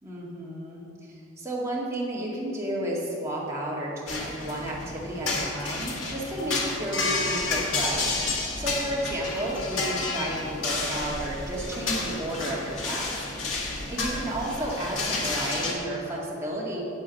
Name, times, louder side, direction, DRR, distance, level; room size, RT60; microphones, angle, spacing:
voice 1, 0.0-8.2 8.6-13.1 13.9-16.8, right 1 dB, 15° right, -5 dB, 2.0 m, -32 dB
sound 1, 4.1-15.7, left 3 dB, 85° left, 1.8 m, -30 dB
8.5 x 8.0 x 6.4 m, 2.6 s
head